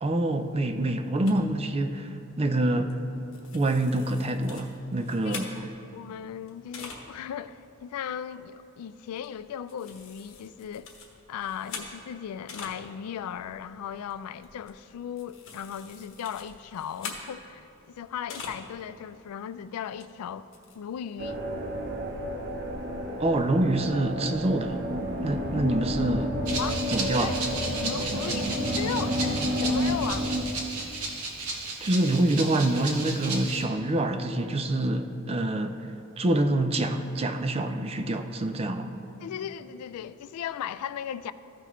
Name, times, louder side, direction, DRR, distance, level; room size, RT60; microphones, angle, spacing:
voice 1, 0.0-3.0 3.5-5.7 23.2-24.8 25.2-26.3 26.9-27.3 31.8-35.8 36.2-38.9, right 1 dB, 25° right, 0.4 m, -26 dB
sound 1, 1.3-1.4 2.9-3.1 3.3-5.9 6.5-7.0 7.6-7.7 8.0-8.3 9.1-9.4 9.7-12.8 13.1-18.7 19.0-19.1 20.0-20.1 20.3-20.8, left 4 dB, 60° left, 1.2 m, -44 dB
voice 2, 5.3-5.7 5.9-10.9 11.3-20.5 20.7-21.4 26.6-30.3 39.2-41.3, left 8 dB, 85° left, 0.3 m, -37 dB
sound 2, 21.2-30.4, equal, 50° right, 0.8 m, -30 dB
Rattle (instrument), 26.4-33.6, right 3 dB, 80° right, 1.2 m, -34 dB
14.5 x 5.8 x 3.1 m
head